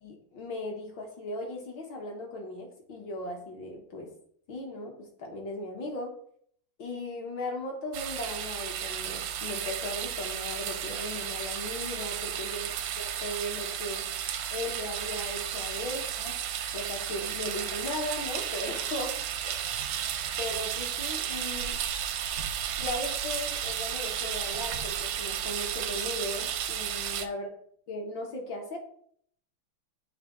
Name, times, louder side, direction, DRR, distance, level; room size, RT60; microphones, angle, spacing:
voice 1, 0.0-4.1 4.5-6.1 6.8-12.7 13.0-14.0 14.5-16.4 16.7-19.8 20.4-21.8 22.8-27.5 27.9-28.8, left 1 dB, 60° left, 1 dB, 1.9 m, -37 dB
sound 1, 7.9-27.3, right 9 dB, 85° right, 1.5 m, -33 dB
7.3 x 2.8 x 5.1 m, 0.63 s
omnidirectional pair, 2.4 m